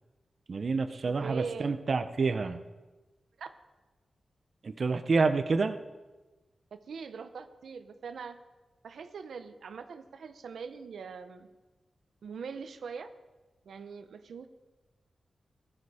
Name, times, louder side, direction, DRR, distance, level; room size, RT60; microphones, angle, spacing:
voice 1, 0.5-2.6 4.6-5.8, right 4 dB, 55° right, 8 dB, 0.8 m, -28 dB
voice 2, 1.1-1.8 3.4-3.5 6.7-8.4 8.8-11.5 12.2-13.1 13.7-14.5, right 5 dB, 90° right, 8 dB, 0.8 m, -42 dB
17.0 x 11.5 x 4.9 m, 1.2 s
wide cardioid pair, 95°, 0 cm